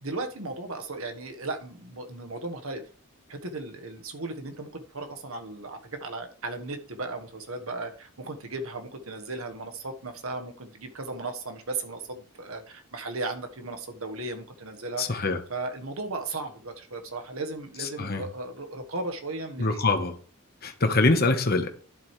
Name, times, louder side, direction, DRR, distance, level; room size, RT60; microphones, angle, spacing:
voice 1, 0.0-2.8 3.3-15.2 15.5-19.7, right 2 dB, 70° right, 1.4 m, -36 dB
voice 2, 15.0-15.4 18.0-18.2 19.6-20.1 20.6-21.7, left 3 dB, 45° left, 1.2 m, -24 dB
11.5 x 7.7 x 3.3 m
head